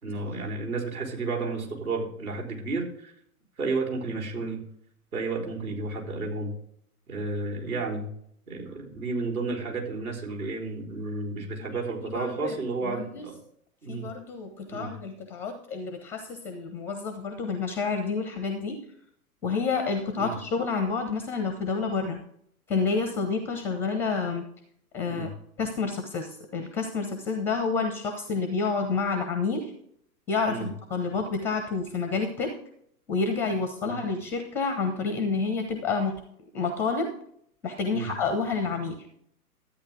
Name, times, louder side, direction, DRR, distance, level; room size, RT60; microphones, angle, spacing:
voice 1, 0.0-3.1 3.6-4.6 5.1-6.5 7.1-8.1 8.5-13.4 13.8-14.1 14.7-14.9 20.2-20.3 25.1-25.3 30.5-30.7 33.8-33.9 37.9-38.1, right 3 dB, 70° right, 0 dB, 4.0 m, -32 dB
voice 2, 12.1-12.5 12.9-13.2 13.9-18.8 19.4-22.2 22.7-24.5 24.9-25.3 25.6-29.7 30.3-32.5 33.1-36.2 36.5-37.1 37.6-39.0, left 4 dB, 5° left, 7 dB, 0.5 m, -29 dB
13.0 x 8.9 x 3.6 m, 0.68 s
figure-of-eight pair, 115°, 45 cm